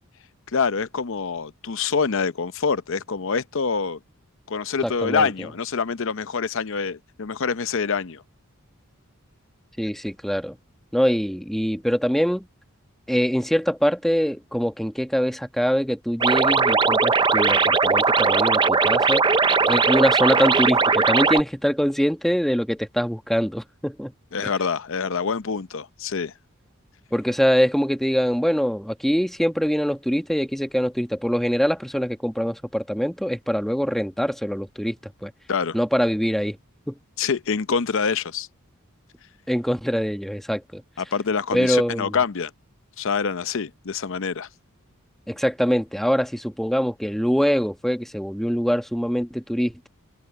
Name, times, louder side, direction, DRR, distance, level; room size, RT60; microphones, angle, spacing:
voice 1, 0.5-4.0 4.5-8.2 24.3-26.3 35.5-35.8 37.2-38.5 41.0-42.5 43.0-44.5, left 5 dB, 65° left, 0.7 m, -25 dB
voice 2, 4.8-5.3 9.8-10.5 10.9-12.4 13.1-19.2 19.7-24.1 24.4-24.5 27.1-35.3 35.7-36.6 36.9-37.0 39.5-40.8 41.5-42.2 45.3-49.9, equal, ahead, 1.2 m, -23 dB
sound 1, 16.2-21.4, right 4 dB, 20° right, 0.6 m, -19 dB
open air
head